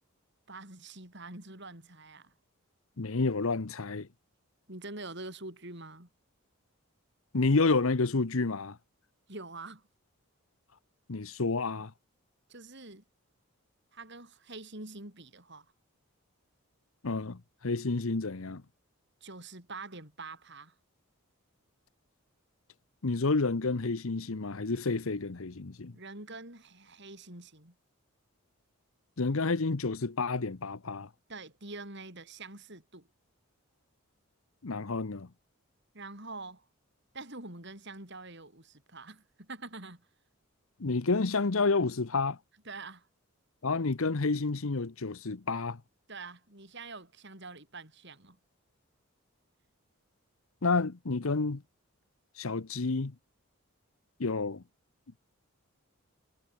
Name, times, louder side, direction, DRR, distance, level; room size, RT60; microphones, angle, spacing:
voice 1, 0.5-2.3 4.7-6.1 9.3-9.9 12.5-13.0 13.9-15.7 19.2-20.7 25.9-27.8 31.3-33.1 35.9-36.7 37.1-40.1 42.6-43.1 45.5-45.6 46.1-48.4, right 3 dB, 50° right, 6.1 m, -45 dB
voice 2, 3.0-4.1 7.3-8.8 11.1-11.9 17.0-18.6 23.0-25.9 29.2-31.1 34.6-35.3 40.8-42.4 43.6-45.8 50.6-51.6 52.4-53.1 54.2-54.6, left 3 dB, 70° left, 0.9 m, -29 dB
head